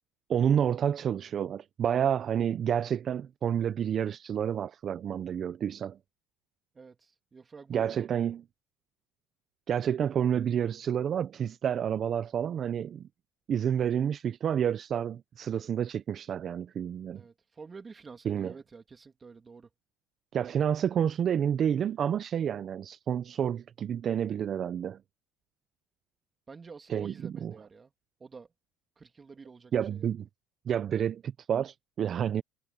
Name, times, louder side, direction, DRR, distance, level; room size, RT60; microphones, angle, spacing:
voice 1, 0.3-6.0 7.7-8.4 9.7-13.1 13.5-17.2 18.3-18.5 20.3-25.0 26.9-27.5 29.7-30.3 30.7-32.4, right 9 dB, 40° right, 0.7 m, -29 dB
voice 2, 6.7-8.2 17.1-19.7 26.5-27.9 28.2-28.5 29.0-30.1, right 4 dB, 25° right, 3.0 m, -49 dB
supercardioid pair, 105°, 0 cm